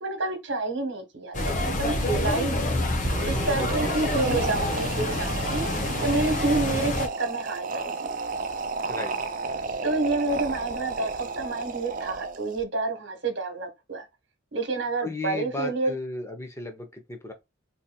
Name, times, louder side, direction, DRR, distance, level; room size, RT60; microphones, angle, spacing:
voice 1, 0.0-2.7 3.2-5.7 6.0-8.1 9.8-14.0 14.5-15.9, right 3 dB, 65° right, 1.4 m, -29 dB
sound 1, 1.3-7.1, left 1 dB, 40° left, 0.9 m, -27 dB
sound 2, 2.9-12.6, right 4 dB, 45° right, 0.5 m, -33 dB
voice 2, 3.6-3.9 8.9-9.1 15.0-17.3, left 3 dB, 15° left, 0.8 m, -35 dB
4.1 x 2.8 x 2.3 m
head